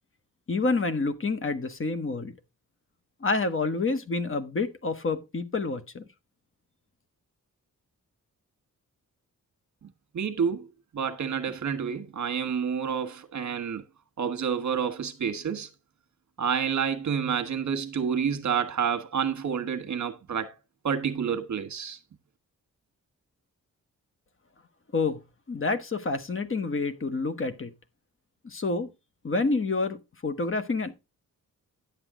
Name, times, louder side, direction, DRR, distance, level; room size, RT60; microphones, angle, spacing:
voice 1, 0.5-2.3 3.2-6.1 24.9-25.2 25.5-27.7 28.4-28.9 29.2-30.0 30.2-30.9, left 3 dB, 40° left, 1.4 m, -28 dB
voice 2, 10.1-10.7 10.9-13.8 14.2-15.7 16.4-20.5 20.8-22.0, right 7 dB, 60° right, 1.5 m, -29 dB
11.0 x 8.3 x 3.8 m
wide cardioid pair, 115°, 33 cm